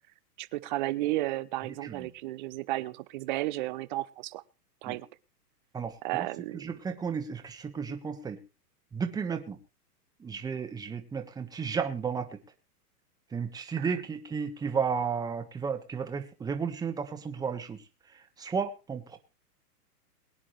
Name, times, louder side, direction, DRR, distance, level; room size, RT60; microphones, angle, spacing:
voice 1, 0.4-4.4 4.8-5.1 6.0-6.7 13.8-14.0, right 17 dB, 30° right, 16 dB, 0.7 m, -33 dB
voice 2, 5.7-6.3 6.5-8.4 8.9-9.6 10.2-12.3 13.3-17.8 18.4-19.2, right 6 dB, 10° right, 7 dB, 1.3 m, -33 dB
22.0 x 10.0 x 3.2 m, 0.30 s
hypercardioid pair, 150°, 47 cm